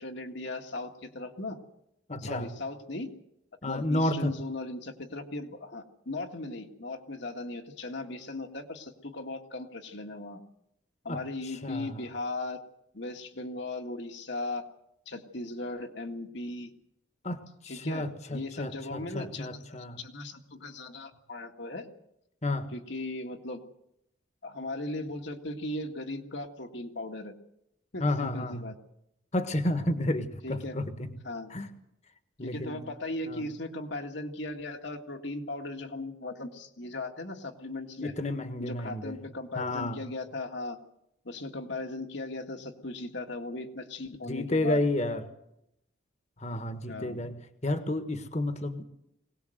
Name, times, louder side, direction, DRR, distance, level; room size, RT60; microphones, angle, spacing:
voice 1, 0.0-1.6 2.2-3.1 3.7-10.4 11.0-12.6 12.9-14.7 15.1-16.7 17.7-21.9 22.7-23.6 24.4-27.3 27.9-28.7 30.4-30.8 31.2-31.5 32.4-38.1 38.6-40.8 41.2-44.8 46.9-47.2, left 2 dB, 65° left, 4 dB, 1.9 m, -38 dB
voice 2, 2.1-2.5 3.6-4.3 11.1-12.1 17.2-20.0 22.4-22.7 28.0-28.7 29.3-31.1 31.5-31.7 32.4-32.9 33.2-33.4 38.0-39.2 39.5-40.0 44.2-45.2 46.4-47.3 47.6-48.8, left 1 dB, 35° left, 9 dB, 1.5 m, -31 dB
21.5 x 18.5 x 7.9 m, 0.81 s
head